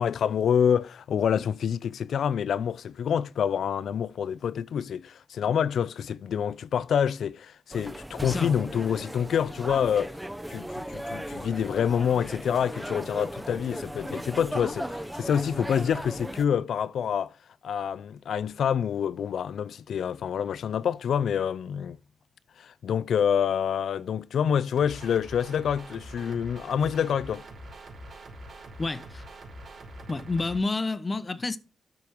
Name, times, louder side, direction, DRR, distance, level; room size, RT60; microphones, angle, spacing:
voice 1, 0.0-10.1 10.5-17.3 17.6-22.0 22.6-27.4, left 8 dB, 85° left, 0.5 m, -27 dB
sound 1, 7.7-16.5, equal, 5° right, 0.8 m, -37 dB
voice 2, 8.2-8.5 28.8-29.2 30.1-31.6, left 3 dB, 30° left, 0.9 m, -29 dB
sound 2, 24.8-30.6, right 1 dB, 60° right, 4.4 m, -44 dB
12.5 x 5.3 x 4.5 m
cardioid pair, 85°, 0 cm